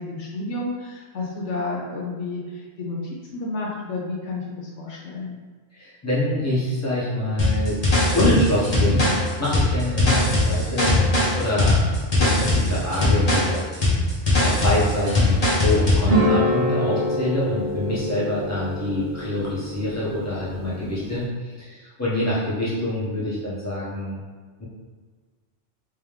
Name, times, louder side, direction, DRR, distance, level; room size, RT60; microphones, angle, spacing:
voice 1, 0.0-3.0 3.2-5.3 14.9-15.1 20.6-20.9, left 2 dB, 75° left, -2 dB, 1.0 m, -31 dB
voice 2, 5.7-7.8 8.1-9.1 9.4-10.9 11.3-11.8 12.2-13.8 14.4-24.2, left 1 dB, 15° left, -9 dB, 1.2 m, -25 dB
sound 1, 7.4-16.1, left 2 dB, 30° left, 1.1 m, -20 dB
sound 2, 16.1-21.2, equal, 30° right, 0.7 m, -26 dB
3.4 x 3.1 x 3.3 m, 1.4 s
omnidirectional pair, 1.3 m